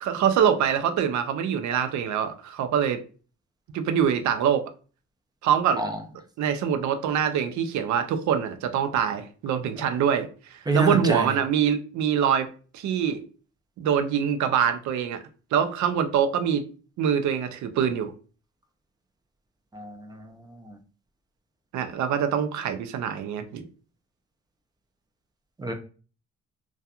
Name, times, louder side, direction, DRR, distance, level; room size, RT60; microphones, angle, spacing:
voice 1, 0.0-3.0 3.7-4.7 5.4-5.8 6.4-12.5 12.7-13.2 13.8-15.2 15.5-16.6 17.0-18.1 21.7-23.6, right 8 dB, 70° right, 0.5 m, -24 dB
voice 2, 10.7-11.3 19.7-20.2 20.7-20.8 25.6-25.7, right 2 dB, 15° right, 0.4 m, -26 dB
2.7 x 2.3 x 2.3 m
cardioid pair, 90°, 30 cm